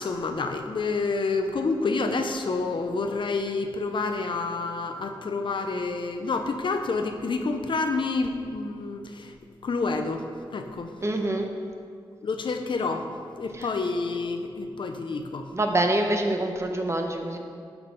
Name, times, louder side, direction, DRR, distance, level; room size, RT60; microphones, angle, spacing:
voice 1, 0.0-9.3 9.6-10.9 12.2-13.1 13.4-15.5, left 3 dB, 60° left, 6 dB, 0.7 m, -28 dB
voice 2, 11.0-11.5 13.6-13.7 15.5-17.4, right 1 dB, 30° right, 3 dB, 1.0 m, -25 dB
12.0 x 4.0 x 5.1 m, 2.2 s
cardioid pair, 70°, 9 cm